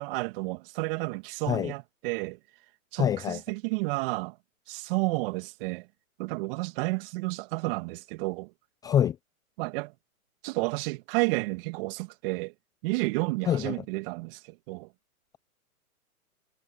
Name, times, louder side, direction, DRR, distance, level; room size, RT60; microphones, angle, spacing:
voice 1, 0.0-2.4 2.9-4.4 4.7-5.9 6.2-8.5 9.6-9.9 10.4-12.5 12.8-14.9, right 24 dB, 40° right, 2.1 m, -31 dB
voice 2, 3.0-3.4 8.8-9.2 13.5-13.8, left 10 dB, 10° left, 0.5 m, -25 dB
hypercardioid pair, 130°, 44 cm